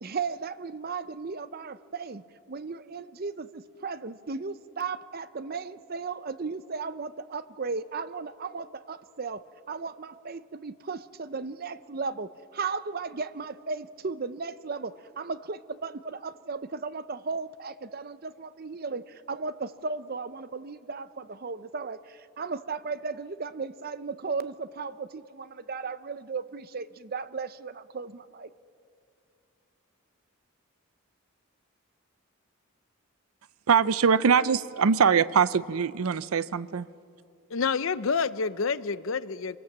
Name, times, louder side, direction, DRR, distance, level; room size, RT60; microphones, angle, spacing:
voice 1, 0.0-2.2 2.5-9.4 9.7-12.3 12.5-19.0 19.3-22.0 22.4-28.5, right 4 dB, 45° right, 0.7 m, -35 dB
voice 2, 33.7-36.8, right 6 dB, 90° right, 0.6 m, -22 dB
voice 3, 37.5-39.6, left 5 dB, 70° left, 0.7 m, -28 dB
26.0 x 18.0 x 7.5 m
head